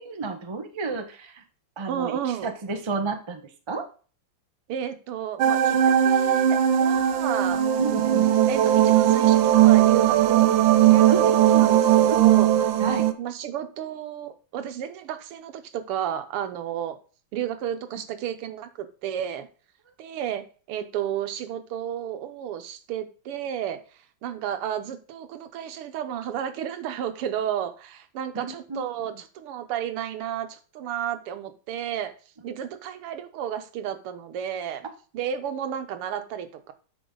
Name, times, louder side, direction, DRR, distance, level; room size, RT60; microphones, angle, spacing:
voice 1, 0.0-1.4 1.8-3.4 3.7-3.9 7.8-8.3 11.1-11.7 12.8-13.0 28.3-28.8, right 4 dB, 40° right, 5 dB, 0.4 m, -31 dB
voice 2, 1.9-2.5 4.7-7.6 8.5-10.5 10.8-12.5 13.2-17.0 17.3-19.5 20.0-20.4 20.7-23.8 24.2-32.1 32.4-34.9 35.1-36.7, right 9 dB, 90° right, 9 dB, 1.8 m, -32 dB
sound 1, 5.4-13.1, right 11 dB, 70° right, 1.4 m, -18 dB
8.6 x 5.9 x 3.8 m, 0.38 s
omnidirectional pair, 2.4 m